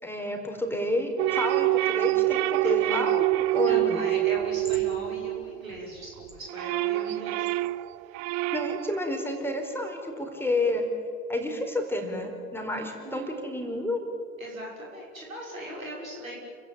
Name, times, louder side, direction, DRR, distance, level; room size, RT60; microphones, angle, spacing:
voice 1, 0.0-4.1 8.5-10.8 11.3-14.0, left 1 dB, 5° left, 3 dB, 4.6 m, -30 dB
sound 1, 1.2-5.9 6.2-9.0, right 18 dB, 45° right, 0.7 m, -26 dB
voice 2, 3.6-7.5 12.9-13.3 14.4-16.4, equal, 85° right, -2 dB, 6.1 m, -39 dB
30.0 x 16.0 x 8.8 m, 2.2 s
figure-of-eight pair, 65°, 39 cm